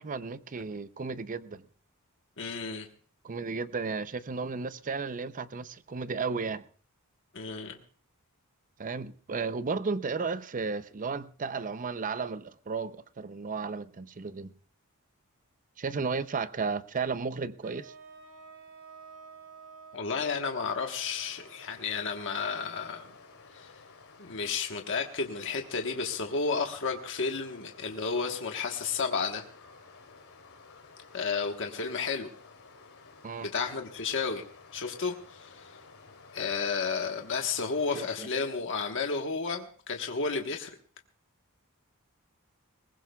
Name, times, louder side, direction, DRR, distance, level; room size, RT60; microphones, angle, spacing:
voice 1, 0.0-1.6 3.2-6.6 8.8-14.5 15.8-17.9 33.2-33.5 37.9-38.3, right 4 dB, 35° right, 0.6 m, -34 dB
voice 2, 2.4-2.9 7.3-7.8 19.9-23.1 23.5-23.7 24.2-29.4 31.1-32.3 33.4-34.4 34.7-35.8 36.3-40.7, left 5 dB, 60° left, 1.3 m, -32 dB
sound 1, 17.6-23.7, right 4 dB, 70° right, 3.4 m, -53 dB
Stream, 21.0-38.0, left 4 dB, 75° left, 2.9 m, -54 dB
21.5 x 19.5 x 2.3 m
head